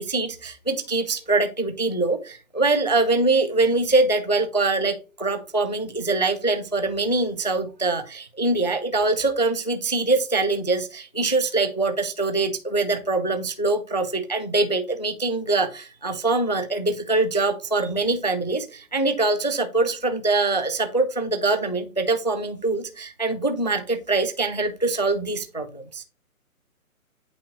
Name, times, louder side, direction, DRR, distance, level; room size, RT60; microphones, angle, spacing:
voice 1, 0.0-26.0, right 3 dB, 35° left, 9 dB, 0.4 m, -23 dB
8.5 x 4.4 x 2.8 m, 0.32 s
hypercardioid pair, 165°, 43 cm